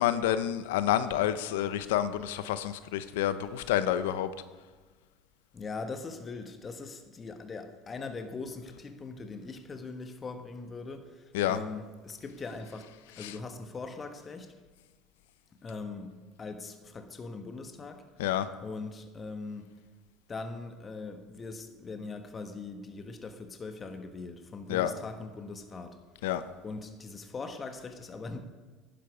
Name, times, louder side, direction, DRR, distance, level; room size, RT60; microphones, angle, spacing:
voice 1, 0.0-4.3 11.3-11.6 13.2-13.3 18.2-18.5 24.7-24.9 26.2-26.4, left 11 dB, 85° left, 13 dB, 0.6 m, -28 dB
voice 2, 5.5-14.5 15.6-18.0 18.6-19.7 20.3-26.0 26.6-28.4, left 3 dB, 30° left, 7 dB, 1.3 m, -41 dB
11.5 x 10.5 x 4.9 m, 1.3 s
hypercardioid pair, 85°, 0 cm